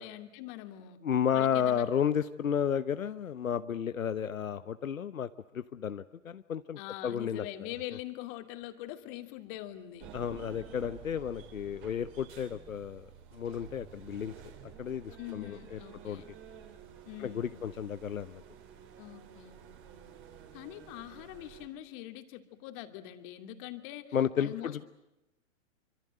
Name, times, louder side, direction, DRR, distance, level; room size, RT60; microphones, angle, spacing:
voice 1, 0.0-1.0 1.3-1.9 6.8-10.1 15.2-16.3 17.1-17.6 19.0-19.6 20.5-24.9, left 14 dB, 40° left, 8 dB, 2.8 m, -43 dB
voice 2, 1.0-5.3 5.5-7.4 10.1-13.0 13.3-14.3 14.8-15.8 16.0-16.2 17.2-18.4 24.1-24.8, left 8 dB, 85° left, 12 dB, 1.0 m, -32 dB
sound 1, 10.0-21.7, right 8 dB, 30° right, 4.5 m, -51 dB
26.5 x 26.0 x 7.8 m, 0.95 s
hypercardioid pair, 120°, 40 cm